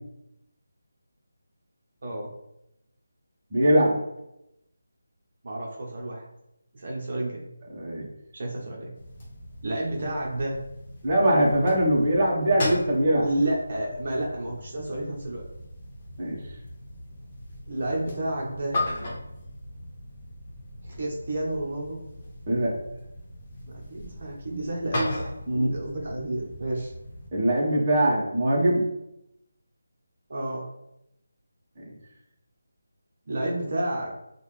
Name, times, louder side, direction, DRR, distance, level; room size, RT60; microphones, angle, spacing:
voice 1, 3.5-4.0 7.7-8.0 11.0-13.2 16.2-16.4 22.5-22.8 25.5-25.7 27.3-28.9, right 1 dB, 25° right, -6 dB, 1.3 m, -22 dB
voice 2, 5.4-6.2 6.7-7.4 8.3-8.9 9.6-10.6 13.2-15.4 17.7-18.8 20.8-22.0 23.7-26.9 30.3-30.7 33.3-34.1, right 1 dB, 50° right, -3 dB, 1.0 m, -30 dB
sound 1, 8.9-27.3, left 1 dB, 30° left, 1.2 m, -38 dB
5.3 x 2.5 x 3.3 m, 0.84 s
figure-of-eight pair, 165°, 0 cm